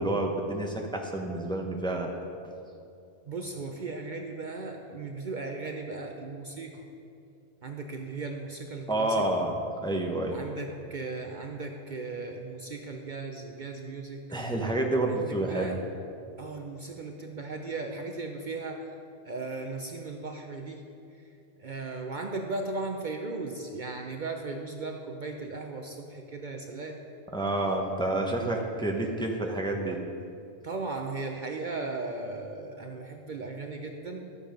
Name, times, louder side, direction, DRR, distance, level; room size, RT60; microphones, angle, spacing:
voice 1, 0.0-2.1 8.9-9.5 9.8-10.4 14.3-15.7 27.3-30.0, right 2 dB, 5° left, 1 dB, 0.8 m, -29 dB
voice 2, 3.3-6.9 7.6-9.3 10.3-14.3 15.1-15.8 16.4-19.0 19.2-20.9 21.6-27.0 30.6-34.2, right 3 dB, 50° right, 3 dB, 0.7 m, -37 dB
12.5 x 7.1 x 5.2 m, 2.6 s
omnidirectional pair, 1.1 m